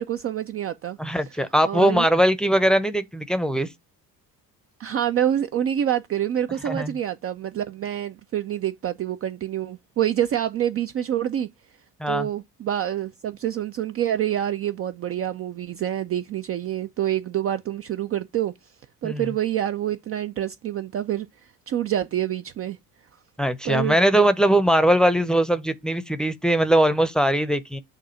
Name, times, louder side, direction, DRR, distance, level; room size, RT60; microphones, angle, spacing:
voice 1, 0.0-1.0 1.6-2.1 4.8-11.5 12.1-18.5 19.0-22.8 23.6-24.0, right 11 dB, 30° right, 0.5 m, -27 dB
voice 2, 1.0-3.7 6.6-7.0 12.0-12.3 19.0-19.3 23.4-27.8, right 1 dB, ahead, 0.7 m, -21 dB
6.8 x 2.7 x 5.6 m
figure-of-eight pair, 55°, 46 cm